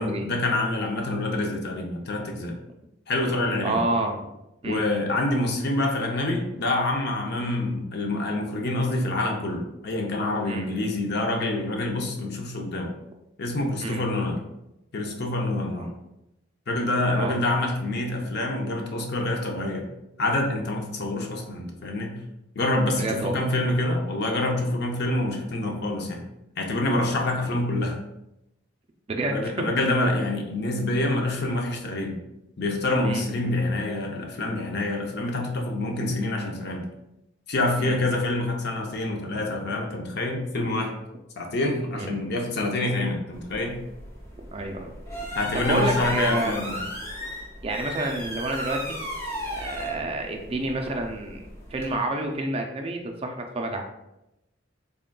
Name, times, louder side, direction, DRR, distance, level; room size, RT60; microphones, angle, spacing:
voice 1, 0.0-2.6 3.1-3.8 4.6-12.9 13.4-14.4 14.9-15.9 16.7-19.8 20.2-22.2 22.6-26.2 26.6-28.0 29.3-32.2 32.6-36.8 37.5-40.9 41.4-43.8 45.3-46.8, left 2 dB, 55° left, 2 dB, 0.6 m, -26 dB
voice 2, 3.6-4.2 4.6-4.8 10.5-10.7 13.8-14.0 17.1-17.3 23.0-23.5 29.1-29.6 33.0-33.3 37.8-38.0 42.0-42.1 44.5-44.9 45.2-46.8 47.6-49.0 49.6-51.4 51.7-53.8, right 2 dB, 30° right, 3 dB, 0.4 m, -29 dB
sound 1, 43.3-51.9, equal, 15° left, 1.0 m, -35 dB
3.8 x 3.6 x 2.2 m, 0.88 s
head